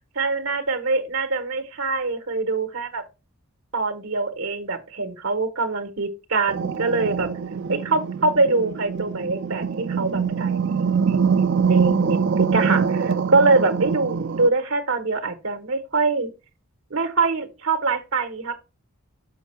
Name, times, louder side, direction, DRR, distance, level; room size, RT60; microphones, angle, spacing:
voice 1, 0.1-3.0 3.7-7.3 7.7-16.3 16.9-18.5, right 3 dB, 75° right, 1.2 m, -24 dB
sound 1, 6.5-14.5, right 6 dB, 55° right, 0.4 m, -24 dB
6.9 x 5.3 x 4.4 m
head